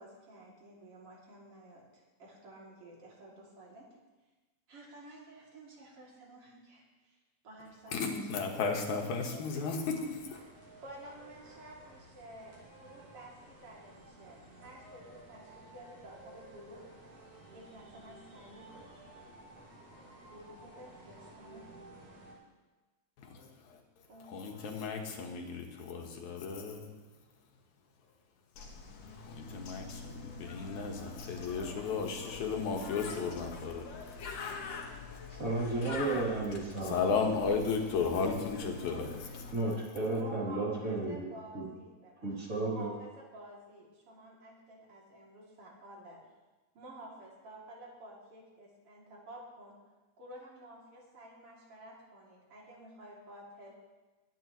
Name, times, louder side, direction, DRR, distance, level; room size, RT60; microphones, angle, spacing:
voice 1, 0.0-3.9 4.7-7.2 7.4-9.4 10.8-16.8 17.5-18.8 20.3-21.7 24.1-24.3 40.0-46.2 46.7-49.8 50.2-53.7, right 1 dB, 50° right, -4 dB, 3.7 m, -51 dB
voice 2, 7.9-10.4 23.2-23.8 24.2-26.9 29.2-34.5 36.8-39.8 40.1-40.2, left 5 dB, 85° left, 2 dB, 2.8 m, -35 dB
sound 1, 9.5-22.4, right 2 dB, 85° right, 5.1 m, -54 dB
Bird, 28.5-39.5, left 4 dB, 65° left, 2.5 m, -45 dB
voice 3, 35.3-36.9 39.5-41.6 42.2-42.9, right 2 dB, 25° right, -6 dB, 3.5 m, -33 dB
21.5 x 9.8 x 3.2 m, 1.2 s
omnidirectional pair, 3.3 m